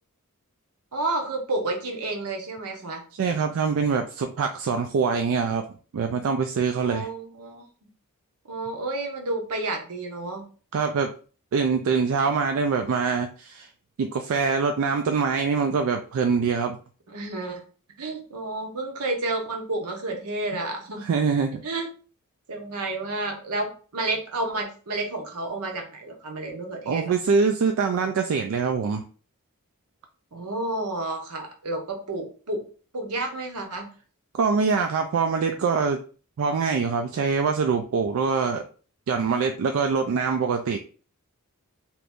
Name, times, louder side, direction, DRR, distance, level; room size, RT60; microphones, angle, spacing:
voice 1, 0.9-3.0 6.8-7.6 8.5-10.4 17.1-17.6 18.0-21.0 21.6-21.9 22.5-27.1 30.3-32.6 32.9-33.9, right 2 dB, 80° right, 2 dB, 0.9 m, -30 dB
voice 2, 3.2-5.6 5.9-7.1 10.7-11.1 11.5-13.7 14.0-16.8 21.0-21.6 26.9-29.0 34.3-36.0 36.4-38.6 39.1-40.8, right 5 dB, 65° right, 5 dB, 0.3 m, -24 dB
3.0 x 2.5 x 3.5 m, 0.39 s
head